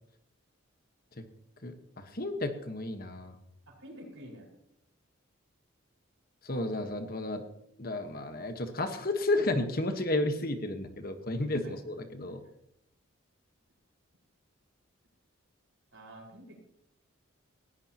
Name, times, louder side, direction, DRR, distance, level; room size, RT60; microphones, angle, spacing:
voice 1, 1.6-3.4 6.4-7.4 7.8-12.4, left 2 dB, 45° left, 7 dB, 1.4 m, -32 dB
voice 2, 3.7-4.5 11.6-11.7 12.3-12.4 15.9-16.7, equal, 65° right, -1 dB, 5.1 m, -49 dB
19.0 x 16.5 x 3.0 m, 0.79 s
head